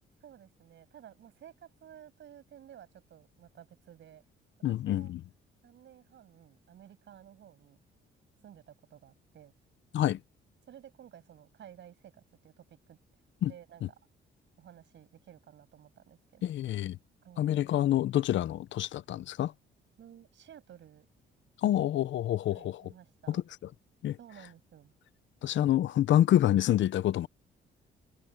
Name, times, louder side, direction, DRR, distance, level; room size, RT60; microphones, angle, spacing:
voice 1, 0.2-4.2 4.9-5.1 5.6-7.8 8.4-9.5 10.7-13.0 13.4-13.8 14.6-16.5 17.2-17.5 20.0-21.1 21.6-21.8 22.5-23.4 24.2-24.9, right 10 dB, 65° right, 7.1 m, -54 dB
voice 2, 4.6-5.2 9.9-10.2 13.4-13.5 16.4-17.0 17.4-19.5 21.6-22.8 23.3-23.4 24.0-24.2 25.4-27.3, left 12 dB, 70° left, 0.8 m, -27 dB
cardioid pair, 90°, 20 cm